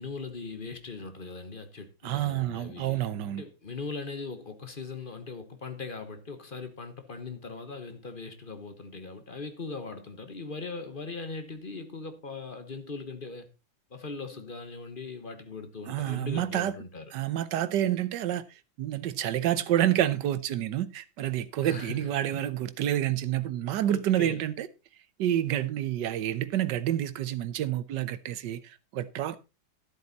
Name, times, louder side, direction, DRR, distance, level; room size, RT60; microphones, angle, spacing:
voice 1, 0.0-13.5 13.9-17.1 21.6-22.1 23.9-24.4, left 4 dB, 30° left, 1.1 m, -40 dB
voice 2, 2.0-3.4 15.9-16.7 17.1-18.4 18.8-24.7 25.2-29.4, right 12 dB, 70° right, 1.4 m, -28 dB
12.5 x 7.9 x 4.1 m
omnidirectional pair, 2.1 m